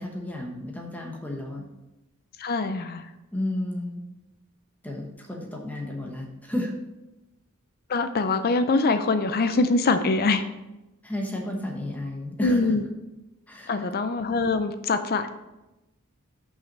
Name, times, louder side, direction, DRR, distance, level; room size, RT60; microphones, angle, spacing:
voice 1, 0.0-1.7 3.3-4.0 4.8-6.7 11.0-12.7 13.5-13.8, left 1 dB, 5° left, 0 dB, 1.1 m, -32 dB
voice 2, 2.4-3.1 7.9-10.4 12.4-12.8 13.7-15.3, left 3 dB, 45° left, 10 dB, 0.5 m, -23 dB
5.8 x 5.6 x 6.7 m, 0.98 s
head